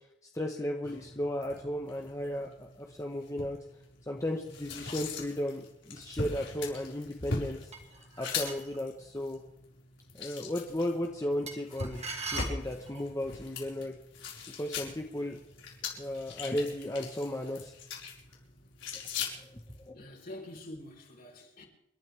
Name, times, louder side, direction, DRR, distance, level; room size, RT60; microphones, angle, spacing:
voice 1, 0.3-3.6 4.1-7.7 8.2-9.4 10.2-14.0 14.6-15.4 16.0-17.7 19.4-20.0, left 1 dB, 20° left, 1.3 m, -35 dB
sound 1, 0.8-19.9, left 4 dB, 90° left, 5.4 m, -41 dB
sound 2, 7.7-8.8 11.5-13.1, right 4 dB, 35° right, 2.4 m, -40 dB
voice 2, 19.9-21.7, left 1 dB, 50° left, 4.4 m, -46 dB
29.0 x 12.0 x 3.6 m
head